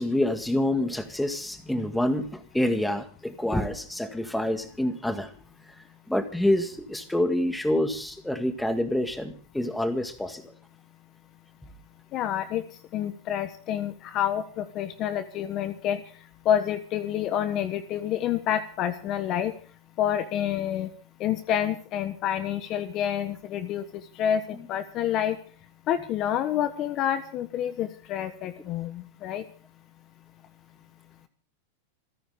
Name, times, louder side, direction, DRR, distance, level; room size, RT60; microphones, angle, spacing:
voice 1, 0.0-2.3 2.5-5.3 6.1-10.4, left 1 dB, 5° left, 7 dB, 1.9 m, -27 dB
voice 2, 12.1-12.6 12.9-16.0 16.4-19.5 20.0-20.9 21.2-23.8 24.1-25.4 25.9-29.4, left 10 dB, 40° left, 11 dB, 1.3 m, -28 dB
28.0 x 10.5 x 3.7 m, 0.41 s
supercardioid pair, 135°, 0 cm